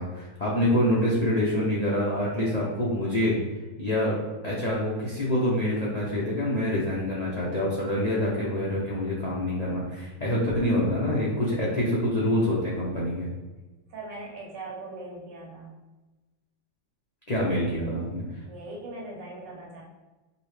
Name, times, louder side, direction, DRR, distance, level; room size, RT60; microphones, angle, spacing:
voice 1, 0.0-3.3 3.8-4.2 4.4-13.3 17.3-18.2, left 1 dB, 85° left, -6 dB, 0.3 m, -26 dB
voice 2, 13.9-15.7 18.5-19.8, right 2 dB, 90° right, -2 dB, 1.7 m, -40 dB
5.3 x 2.1 x 3.2 m, 1.2 s
omnidirectional pair, 1.9 m